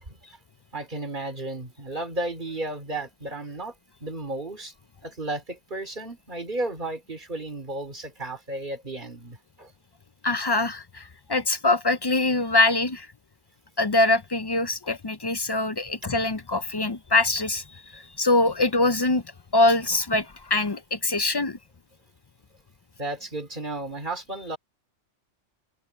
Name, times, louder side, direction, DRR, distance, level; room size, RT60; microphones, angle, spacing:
voice 1, 0.1-0.4 0.7-3.7 4.0-4.7 5.0-9.7 23.0-24.6, right 2 dB, 40° right, 3.5 m, -33 dB
voice 2, 10.2-13.1 13.8-17.6 17.9-19.2 19.5-21.6, left 2 dB, 35° left, 0.4 m, -23 dB
omnidirectional pair, 1.3 m